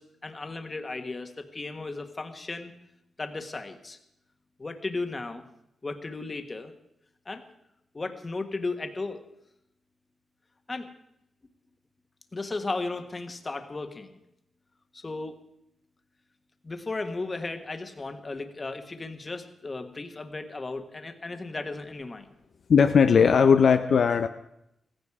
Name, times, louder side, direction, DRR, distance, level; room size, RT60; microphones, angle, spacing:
voice 1, 0.0-2.7 3.2-4.0 4.6-5.4 5.8-6.7 7.2-7.4 7.9-9.2 10.7-10.9 12.3-14.2 14.9-15.4 16.6-22.3, left 3 dB, 25° left, 7 dB, 1.5 m, -35 dB
voice 2, 22.7-24.3, left 6 dB, 60° left, 7 dB, 0.6 m, -18 dB
16.0 x 16.0 x 4.8 m, 0.82 s
wide cardioid pair, 130°, 0 cm